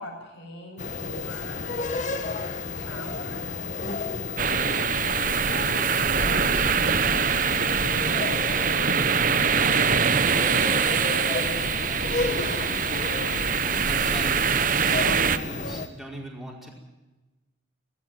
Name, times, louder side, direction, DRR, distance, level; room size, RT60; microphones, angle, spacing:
voice 1, 0.0-1.6 2.7-3.6 5.2-12.3, left 1 dB, 65° left, -6 dB, 6.3 m, -43 dB
sound 1, 0.8-15.9, left 3 dB, 40° left, 1.5 m, -32 dB
sound 2, 4.4-15.4, right 6 dB, 45° right, 0.9 m, -24 dB
voice 2, 13.6-14.5 15.0-16.7, right 1 dB, ahead, -3 dB, 5.1 m, -39 dB
18.0 x 17.0 x 9.3 m, 1.1 s
head